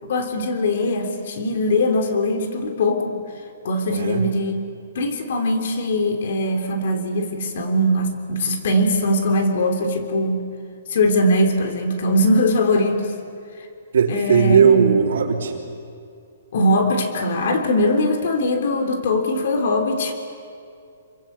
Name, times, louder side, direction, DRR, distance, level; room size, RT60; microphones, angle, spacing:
voice 1, 0.0-3.1 3.6-4.6 5.0-10.4 10.9-13.1 14.1-14.9 16.5-20.1, left 1 dB, 45° left, 5 dB, 3.5 m, -21 dB
voice 2, 3.9-4.3 13.9-15.6, right 6 dB, 65° right, -4 dB, 3.3 m, -18 dB
28.5 x 24.5 x 8.3 m, 2.4 s
hypercardioid pair, 180°, 0 cm